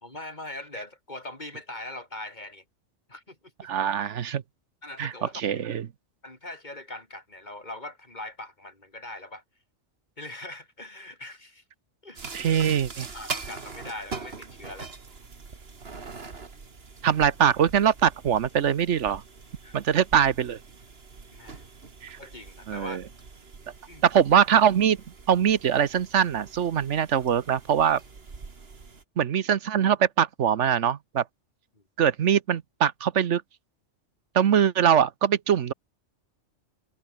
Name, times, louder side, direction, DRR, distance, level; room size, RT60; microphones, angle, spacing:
voice 1, 0.0-2.6 3.1-3.5 4.8-5.6 6.2-9.4 10.2-11.6 12.0-12.6 13.1-14.9 19.6-19.8 21.3-21.6 22.2-23.0 23.9-24.0 31.7-31.8, left 2 dB, 35° left, 4.7 m, -41 dB
voice 2, 3.6-4.4 5.0-5.9 12.3-13.0 17.0-19.2 19.7-20.6 22.0-22.2 22.7-23.0 24.0-25.0 25.3-28.0 29.2-31.2 32.0-33.4 34.3-35.7, right 8 dB, 70° right, 1.2 m, -22 dB
sound 1, 12.2-29.0, right 4 dB, 55° right, 2.1 m, -43 dB
omnidirectional pair, 1.3 m